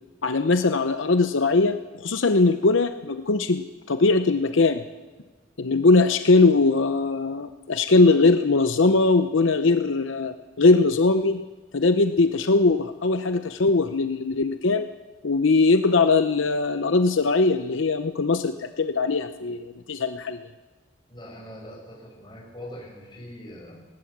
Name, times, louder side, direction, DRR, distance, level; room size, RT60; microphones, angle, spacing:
voice 1, 0.2-4.8 5.6-11.4 11.7-14.9 15.2-20.4, left 3 dB, 80° left, 9 dB, 0.8 m, -21 dB
voice 2, 21.1-23.9, equal, 25° left, -2 dB, 6.9 m, -42 dB
19.5 x 18.5 x 7.3 m, 1.3 s
head